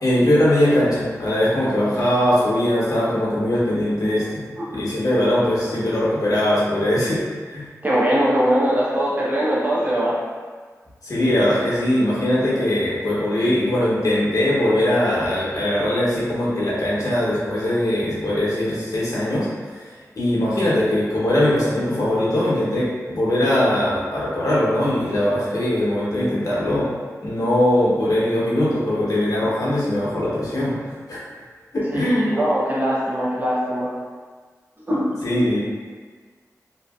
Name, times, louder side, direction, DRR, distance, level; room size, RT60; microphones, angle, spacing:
voice 1, 0.0-7.2 7.5-7.7 11.0-19.9 20.2-26.9 27.2-30.8 31.1-31.2 31.7-32.4 35.2-35.6, left 1 dB, 70° left, -8 dB, 0.8 m, -21 dB
voice 2, 4.6-4.9 7.8-10.1 31.9-33.9 34.9-35.2, equal, 30° right, -7 dB, 0.7 m, -21 dB
2.7 x 2.5 x 2.3 m, 1.5 s
wide cardioid pair, 75°, 6 cm